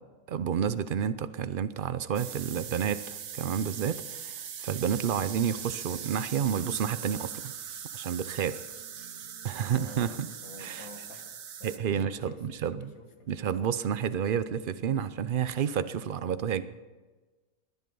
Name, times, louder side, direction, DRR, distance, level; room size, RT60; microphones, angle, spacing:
voice 1, 0.3-7.5 7.9-8.6 9.4-10.3 10.6-10.9 11.6-12.9 13.3-16.6, right 8 dB, 55° right, 13 dB, 0.6 m, -30 dB
sound 1, 2.2-11.8, right 8 dB, 80° right, 1.5 m, -41 dB
voice 2, 9.7-10.1 10.4-13.3, left 3 dB, 65° left, 5 dB, 2.2 m, -48 dB
20.0 x 11.0 x 5.4 m, 1.3 s
omnidirectional pair, 1.6 m